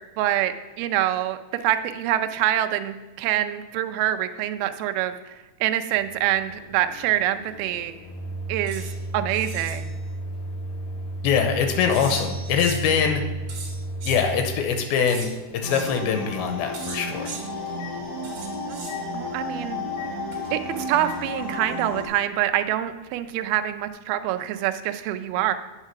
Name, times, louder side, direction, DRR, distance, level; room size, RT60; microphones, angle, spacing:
voice 1, 0.2-7.9 8.5-8.9 9.1-9.9 18.7-19.8 20.5-25.5, right 12 dB, 85° right, 8 dB, 2.5 m, -26 dB
Microwave oven, 5.9-18.5 18.9-19.0 20.0-20.1 21.1-21.2 22.1-22.3, right 1 dB, 60° left, 2.4 m, -35 dB
sound 1, 8.7-8.9 9.3-9.8 11.9-12.9 13.5-14.2 15.1-15.3 15.7-15.9 16.7-17.4 18.2-19.0 20.3-21.4, right 4 dB, 55° right, 2.6 m, -39 dB
voice 2, 11.2-13.2 14.1-17.3, left 6 dB, 90° left, 6 dB, 2.6 m, -23 dB
sound 2, 15.6-22.1, left 1 dB, 10° right, 1.5 m, -32 dB
8.1 x 5.7 x 5.7 m, 1.2 s
omnidirectional pair, 4.4 m